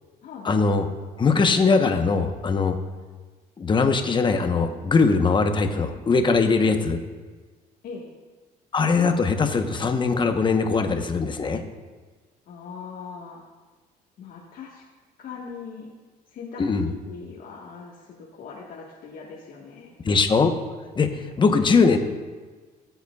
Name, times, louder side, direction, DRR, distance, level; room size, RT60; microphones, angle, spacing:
voice 1, 0.4-0.8 1.2-2.7 3.6-7.0 8.7-11.6 16.6-16.9 20.0-20.5 21.0-22.0, left 4 dB, 30° left, 6 dB, 1.0 m, -21 dB
voice 2, 12.5-13.4 14.2-14.8 15.2-15.9 16.3-19.9 21.5-21.8, left 5 dB, 60° left, -5 dB, 1.5 m, -40 dB
18.0 x 8.0 x 2.4 m, 1.4 s
cardioid pair, 110°, 17 cm